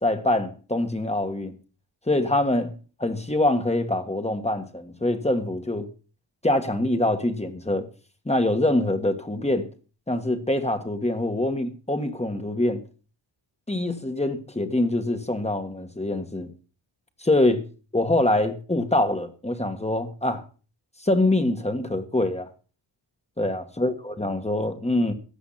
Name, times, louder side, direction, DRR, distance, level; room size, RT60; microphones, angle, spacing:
voice 1, 0.0-1.5 2.1-2.7 3.0-5.9 6.4-7.9 8.2-9.7 10.1-12.8 13.7-16.5 17.2-17.6 17.9-20.4 21.0-22.5 23.4-25.1, left 1 dB, 15° left, 1.8 m, -24 dB
15.5 x 9.4 x 5.9 m
cardioid pair, 90°, 44 cm